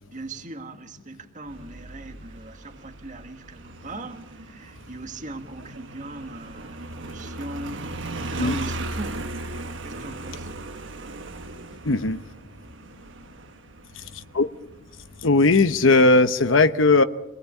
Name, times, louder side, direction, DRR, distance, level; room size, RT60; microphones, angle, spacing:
voice 1, 0.1-9.3 9.8-10.6, right 2 dB, 40° right, 6 dB, 1.9 m, -39 dB
Motorcycle, 1.5-15.8, right 2 dB, 65° right, 1.5 m, -38 dB
voice 2, 11.8-12.2 13.9-14.5 15.2-17.0, left 3 dB, 75° left, 10 dB, 1.0 m, -18 dB
27.0 x 19.0 x 8.4 m, 1.0 s
head